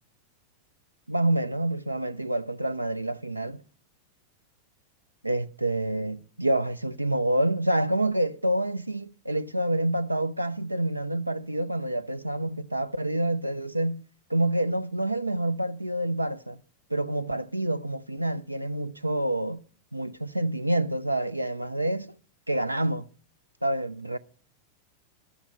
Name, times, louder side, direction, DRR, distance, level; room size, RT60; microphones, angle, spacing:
voice 1, 1.1-3.6 5.2-14.0 14.3-16.6 16.9-19.6 19.9-22.1 22.5-23.1 23.6-24.2, right 1 dB, 85° right, 0.5 m, -27 dB
12.5 x 7.1 x 7.7 m
figure-of-eight pair, 90°, 0 cm